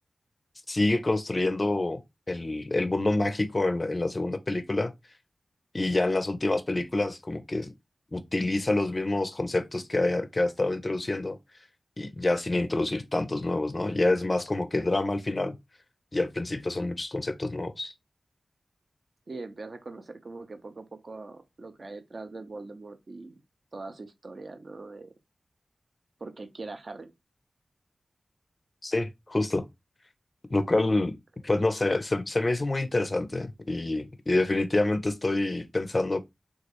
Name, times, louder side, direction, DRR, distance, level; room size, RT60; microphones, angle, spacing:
voice 1, 0.7-2.0 2.3-4.9 5.7-7.7 8.1-11.4 12.0-15.6 16.1-17.9 28.8-29.6 30.5-31.1 31.4-36.2, left 2 dB, 35° left, 0.4 m, -27 dB
voice 2, 19.3-23.4 23.7-25.1 26.2-27.1, right 3 dB, 55° right, 0.5 m, -42 dB
3.0 x 2.3 x 2.9 m
wide cardioid pair, 85°, 0 cm